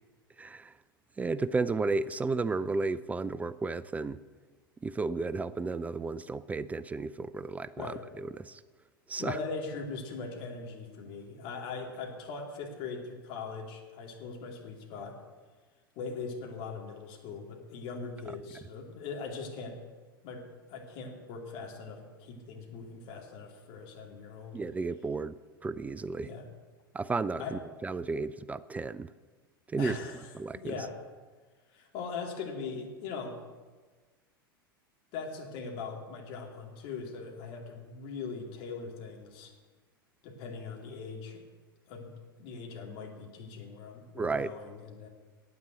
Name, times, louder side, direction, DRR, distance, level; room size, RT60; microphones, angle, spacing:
voice 1, 0.4-0.7 1.2-4.2 4.8-8.6 9.1-9.4 24.5-25.3 25.6-26.3 26.9-29.1 29.7-30.0 30.3-30.7 44.1-44.5, right 3 dB, 10° right, 15 dB, 0.3 m, -33 dB
voice 2, 9.2-15.2 16.0-19.8 20.2-24.6 26.2-26.5 27.4-27.6 29.8-30.2 30.5-30.9 31.7-33.4 35.1-39.5 40.2-41.4 41.9-42.1 42.4-45.1, left 4 dB, 45° left, 1 dB, 2.7 m, -40 dB
9.5 x 8.8 x 8.2 m, 1.4 s
figure-of-eight pair, 90°, 12 cm